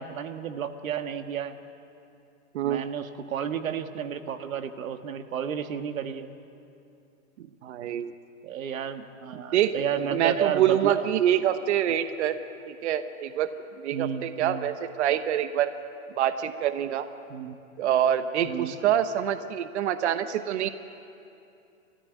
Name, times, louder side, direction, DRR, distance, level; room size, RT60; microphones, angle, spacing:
voice 1, 0.0-1.6 2.6-6.3 8.4-11.1 13.9-14.7 17.3-17.6 18.4-18.8, right 8 dB, 80° right, 8 dB, 1.7 m, -32 dB
voice 2, 7.6-8.1 9.3-9.7 10.1-12.4 12.7-13.5 13.8-15.7 16.2-17.1 17.8-20.7, right 10 dB, 55° right, 10 dB, 1.0 m, -26 dB
29.5 x 14.0 x 9.2 m, 2.7 s
hypercardioid pair, 165°, 40 cm